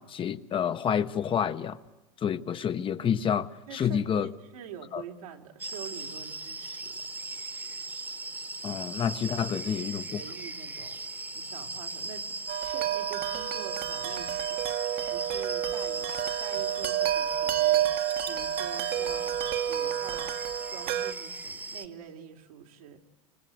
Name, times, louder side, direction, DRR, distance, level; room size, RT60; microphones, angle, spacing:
voice 1, 0.0-1.8 2.2-4.3 4.9-5.0 8.6-10.2, left 8 dB, 30° left, 1.0 m, -29 dB
voice 2, 3.7-7.1 9.3-17.9 18.2-20.4 20.7-23.0, right 8 dB, 85° right, 3.2 m, -46 dB
sound 1, 5.6-21.9, right 2 dB, 10° right, 1.3 m, -38 dB
Wind chime, 12.5-21.1, right 12 dB, 55° right, 1.4 m, -30 dB
29.0 x 25.5 x 7.9 m
supercardioid pair, 120°, 18 cm